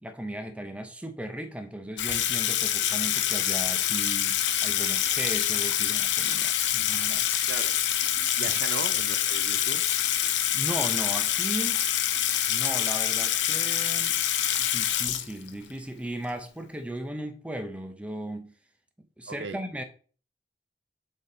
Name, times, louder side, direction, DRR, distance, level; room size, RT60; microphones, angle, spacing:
voice 1, 0.0-7.3 8.4-8.6 10.5-11.9 12.5-14.2 14.6-18.5 19.0-19.8, right 1 dB, 5° right, 0.6 m, -37 dB
Water tap faucet / Sink (filling or washing), 2.0-15.7, left 11 dB, 90° left, 0.6 m, -26 dB
voice 2, 8.4-9.9 19.3-19.6, right 4 dB, 85° right, 0.6 m, -37 dB
6.8 x 3.6 x 3.8 m
head